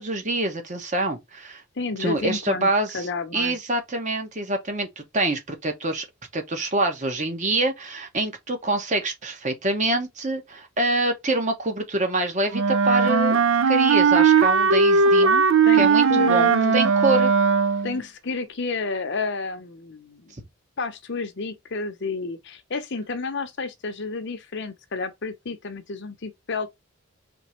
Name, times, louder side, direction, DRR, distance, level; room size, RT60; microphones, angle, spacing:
voice 1, 0.0-1.6 2.0-3.1 3.3-6.0 6.3-15.4 15.8-17.3, right 2 dB, 35° right, 1.1 m, -26 dB
voice 2, 1.8-2.7 2.9-3.6 15.2-15.3 15.6-16.8 17.8-20.3 20.8-26.7, left 4 dB, 55° left, 0.7 m, -30 dB
Wind instrument woodwind instrument, 12.5-18.0, right 5 dB, 60° right, 0.5 m, -18 dB
4.4 x 3.3 x 3.0 m
head